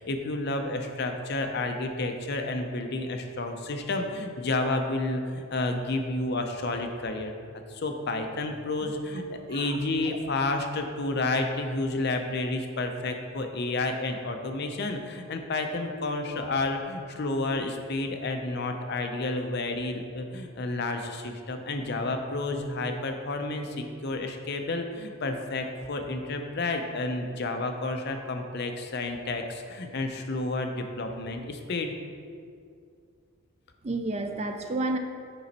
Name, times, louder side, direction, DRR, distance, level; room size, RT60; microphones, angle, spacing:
voice 1, 0.0-31.9, left 2 dB, 50° left, 5 dB, 0.6 m, -30 dB
voice 2, 8.8-9.2 9.5-10.3 33.8-35.0, right 2 dB, 30° right, 5 dB, 0.4 m, -32 dB
6.9 x 5.2 x 4.1 m, 2.2 s
head